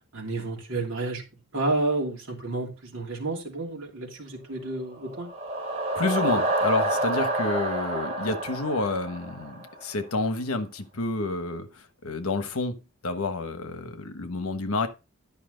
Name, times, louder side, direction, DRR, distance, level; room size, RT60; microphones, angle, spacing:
voice 1, 0.1-1.2 1.5-5.3, right 2 dB, 60° right, 2.9 m, -30 dB
sound 1, 4.9-9.8, right 1 dB, 30° right, 3.5 m, -28 dB
voice 2, 5.9-11.7 12.0-12.7 13.0-14.9, left 3 dB, 70° left, 1.2 m, -29 dB
11.0 x 5.8 x 3.8 m
head